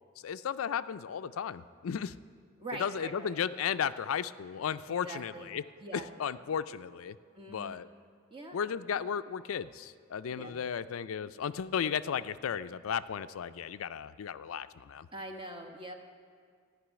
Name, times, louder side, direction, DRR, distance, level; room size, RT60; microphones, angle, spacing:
voice 1, 0.2-2.1 2.8-5.6 5.9-7.2 7.5-7.9 8.5-15.1, left 7 dB, 90° left, 14 dB, 0.4 m, -34 dB
voice 2, 2.6-3.3 4.9-5.5 5.8-6.1 7.3-7.8 8.3-8.6 10.3-10.6 15.1-15.9, right 2 dB, 25° right, 3 dB, 1.0 m, -43 dB
15.0 x 5.5 x 9.7 m, 2.1 s
head